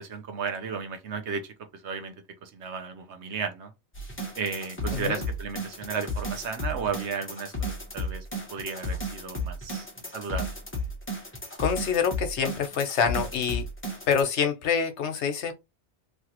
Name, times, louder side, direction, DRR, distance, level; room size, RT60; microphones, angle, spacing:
voice 1, 0.0-1.5 1.8-2.1 2.4-3.7 4.3-9.9 10.1-10.5, right 5 dB, 80° right, 1.1 m, -34 dB
sound 1, 3.9-14.2, equal, 15° left, 0.7 m, -34 dB
voice 2, 11.6-13.6 14.1-15.5, left 6 dB, 80° left, 1.0 m, -26 dB
3.3 x 2.5 x 2.8 m
omnidirectional pair, 1.2 m